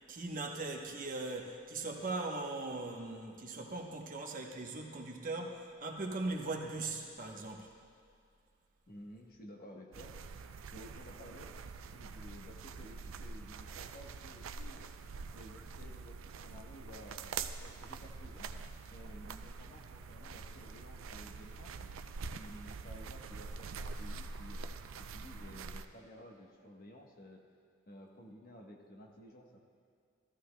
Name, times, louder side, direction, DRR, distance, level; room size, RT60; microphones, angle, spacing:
voice 1, 0.1-7.7, right 2 dB, 45° right, 1 dB, 1.0 m, -39 dB
voice 2, 8.9-10.1 10.7-11.5 11.9-14.9 15.3-18.5 18.9-21.7 22.3-24.6 25.0-27.4 27.9-29.7, equal, 50° left, 1 dB, 1.1 m, -53 dB
sound 1, 9.9-25.9, right 4 dB, 90° right, 0.4 m, -45 dB
14.5 x 14.0 x 2.2 m, 2.3 s
head